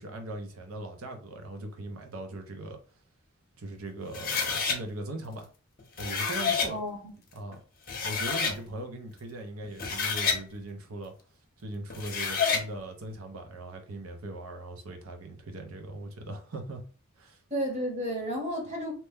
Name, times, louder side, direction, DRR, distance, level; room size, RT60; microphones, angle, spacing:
voice 1, 0.0-2.8 3.6-5.5 6.0-6.8 7.3-7.6 8.0-11.1 11.6-16.8 17.2-17.4, right 1 dB, 85° right, 0.7 m, -39 dB
sound 1, 4.1-4.8 5.8-6.7 7.5-7.6 7.9-8.6 9.6-10.4 11.9-12.7, left 5 dB, 45° left, 0.7 m, -29 dB
voice 2, 6.7-7.1 17.5-18.9, equal, 35° right, 1.0 m, -32 dB
2.9 x 2.1 x 3.4 m
head